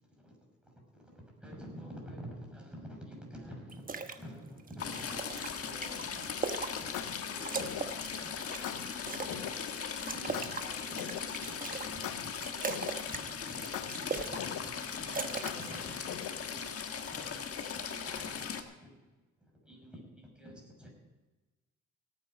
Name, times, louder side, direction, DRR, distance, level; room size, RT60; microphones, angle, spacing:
voice 1, 0.1-6.4 6.7-16.6 16.9-19.1 19.4-20.9, equal, 5° right, 0 dB, 6.1 m, -50 dB
sound 1, 3.7-4.2 4.6-7.2 7.4-9.4 9.8-11.9 12.2-13.2 13.5-14.4 14.7-15.8, right 4 dB, 30° right, 1.2 m, -39 dB
Stream / Trickle dribble, 4.8-18.6, left 6 dB, 50° left, 1.4 m, -39 dB
sound 2, 6.1-6.4 6.9-8.1 8.6-9.6 10.3-11.5 12.0-13.2 13.7-14.9 15.4-16.6, left 10 dB, 80° left, 0.9 m, -41 dB
17.5 x 9.1 x 5.2 m, 1.2 s
cardioid pair, 90°, 30 cm